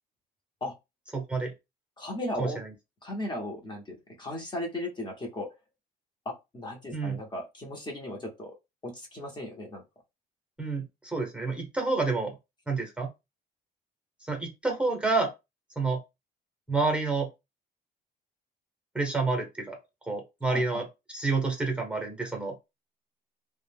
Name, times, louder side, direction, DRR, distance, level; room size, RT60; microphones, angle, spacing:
voice 1, 1.1-1.5 2.4-2.7 6.9-7.2 10.6-12.3 12.7-13.1 14.3-15.3 15.8-16.0 16.7-17.3 18.9-19.8 20.1-20.9 21.1-22.6, right 3 dB, 5° right, 3 dB, 0.8 m, -29 dB
voice 2, 2.0-2.6 3.0-5.5 6.3-8.5 8.8-9.8 20.5-20.8, left 1 dB, 25° left, 0 dB, 0.8 m, -36 dB
2.3 x 2.1 x 3.4 m, 0.23 s
cardioid pair, 110°, 17 cm